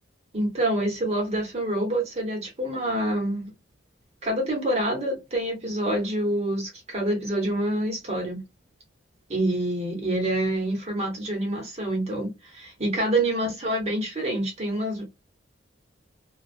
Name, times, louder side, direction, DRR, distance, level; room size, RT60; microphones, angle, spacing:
voice 1, 0.3-3.5 4.2-8.4 9.3-15.0, right 1 dB, 35° right, 1.0 m, -27 dB
2.3 x 2.2 x 2.4 m
head